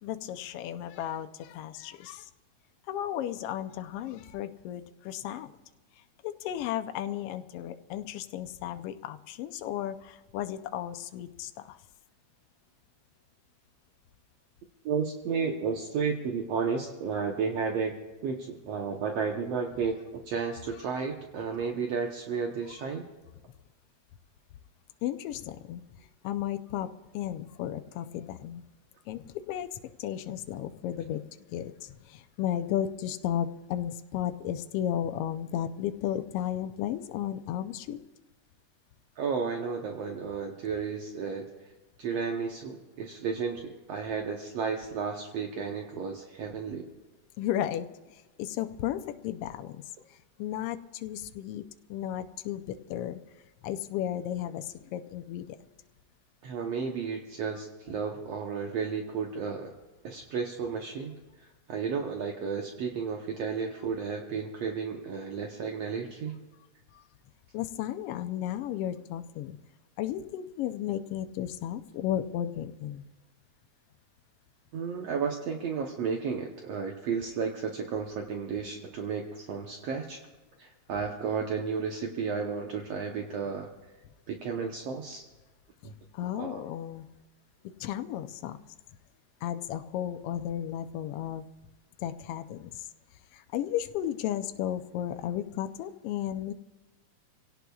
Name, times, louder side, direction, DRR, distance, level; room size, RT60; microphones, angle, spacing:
voice 1, 0.0-2.3 2.9-5.5 6.2-11.8 25.0-25.8 26.2-26.9 27.1-28.6 29.1-31.2 31.5-38.0 47.4-49.8 50.4-51.6 51.9-53.2 53.6-55.6 66.9-67.0 67.5-69.6 70.0-73.0 85.8-87.0 87.8-88.6 89.4-91.4 92.0-92.7 93.3-96.5, left 11 dB, 80° left, 9 dB, 1.3 m, -34 dB
voice 2, 14.9-17.9 18.2-20.0 20.3-23.1 39.2-41.5 42.0-46.9 56.4-59.7 60.0-61.1 61.7-66.4 74.7-80.2 80.6-83.7 84.3-85.2 85.9-86.0 86.3-86.6, right 5 dB, 65° right, 2 dB, 1.9 m, -33 dB
26.5 x 17.5 x 2.4 m, 1.2 s
omnidirectional pair, 3.4 m